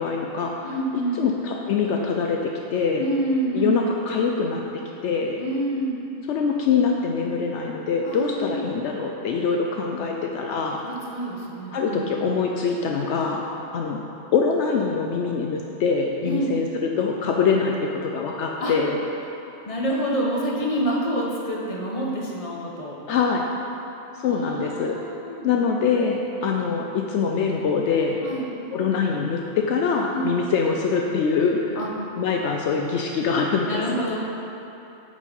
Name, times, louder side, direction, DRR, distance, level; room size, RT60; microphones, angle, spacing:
voice 1, 0.0-0.7 1.1-3.1 3.5-5.4 6.3-10.8 11.7-13.5 13.7-14.0 14.3-19.0 23.1-23.4 24.1-25.0 25.4-28.2 28.7-31.8 32.2-34.0, left 5 dB, 70° left, 1 dB, 0.9 m, -24 dB
voice 2, 0.6-1.2 3.0-3.8 5.4-6.0 8.0-8.8 10.8-12.1 16.2-16.5 18.6-18.8 19.7-23.0 24.3-25.5 28.2-28.5 30.1-30.4 31.8-31.9 33.7-34.2, right 1 dB, 30° left, -3 dB, 1.1 m, -27 dB
8.3 x 5.5 x 5.2 m, 2.9 s
omnidirectional pair, 1.3 m